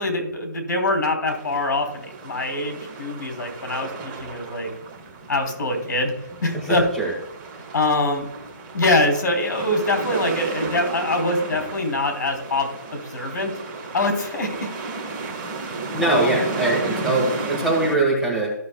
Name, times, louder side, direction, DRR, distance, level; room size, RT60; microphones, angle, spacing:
voice 1, 0.0-4.7 5.3-6.1 6.4-6.9 7.7-8.3 8.7-13.5 13.9-14.6 16.0-16.4, left 2 dB, 65° left, 3 dB, 3.2 m, -24 dB
sound 1, 1.3-18.0, right 3 dB, 20° right, 1.5 m, -33 dB
voice 2, 6.5-7.1 15.9-18.5, right 2 dB, 5° right, -5 dB, 1.6 m, -22 dB
14.5 x 6.5 x 2.3 m, 0.82 s
hypercardioid pair, 165°, 10 cm